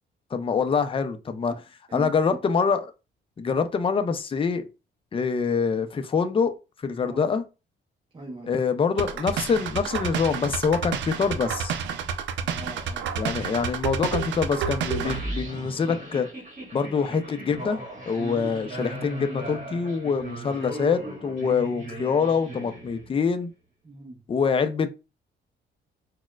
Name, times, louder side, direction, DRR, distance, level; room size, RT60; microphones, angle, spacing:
voice 1, 0.3-1.5 1.9-2.9 3.4-4.7 5.1-6.5 6.8-7.4 8.5-11.7 13.2-16.3 16.7-17.8 18.1-23.5 24.3-25.0, left 5 dB, 25° left, 0.4 m, -25 dB
voice 2, 1.9-2.4 7.0-7.2 8.1-8.5 12.4-13.2 23.8-24.2, right 2 dB, 25° right, 0.7 m, -41 dB
sound 1, 9.0-15.2, right 7 dB, 70° right, 0.4 m, -30 dB
sound 2, 15.0-23.3, right 1 dB, 40° right, 1.4 m, -37 dB
4.1 x 2.1 x 2.3 m
cardioid pair, 90°, 20 cm